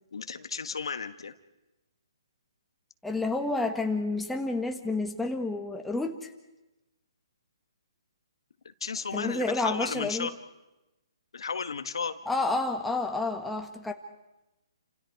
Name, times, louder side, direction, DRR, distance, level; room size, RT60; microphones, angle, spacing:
voice 1, 0.1-1.3 8.6-10.3 11.3-12.2, left 5 dB, 75° left, 9 dB, 1.5 m, -34 dB
voice 2, 3.0-6.3 9.1-10.3 12.3-13.9, left 2 dB, 5° left, 3 dB, 1.6 m, -30 dB
29.5 x 27.0 x 4.8 m, 1.0 s
hypercardioid pair, 145°, 3 cm